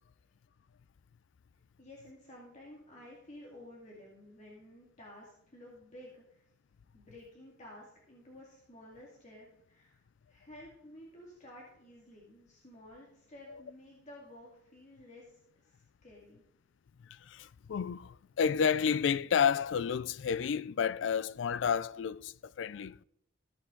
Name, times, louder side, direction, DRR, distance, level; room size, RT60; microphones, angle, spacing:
voice 1, 1.8-6.4 6.9-16.4, left 1 dB, 40° left, 2.1 m, -53 dB
voice 2, 17.1-23.0, left 7 dB, 70° left, 0.4 m, -31 dB
14.5 x 8.3 x 3.8 m
head